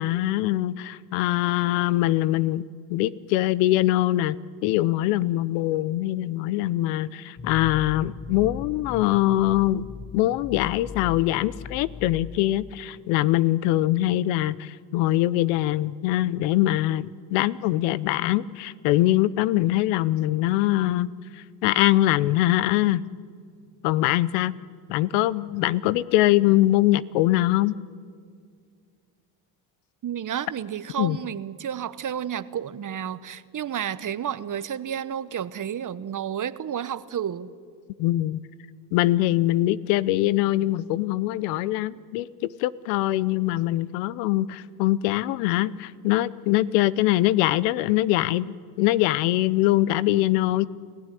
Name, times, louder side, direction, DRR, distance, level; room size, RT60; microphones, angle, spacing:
voice 1, 0.0-2.6 2.9-4.3 4.6-9.8 10.1-21.1 21.6-23.0 23.8-24.5 24.9-27.7 31.0-31.2 38.0-38.4 38.9-50.7, left 15 dB, 85° left, 19 dB, 0.8 m, -23 dB
sound 1, 7.4-13.3, left 5 dB, 20° left, 0.6 m, -39 dB
voice 2, 30.0-37.5, right 9 dB, 40° right, 15 dB, 1.2 m, -31 dB
29.5 x 16.0 x 9.9 m, 2.1 s
supercardioid pair, 75°, 48 cm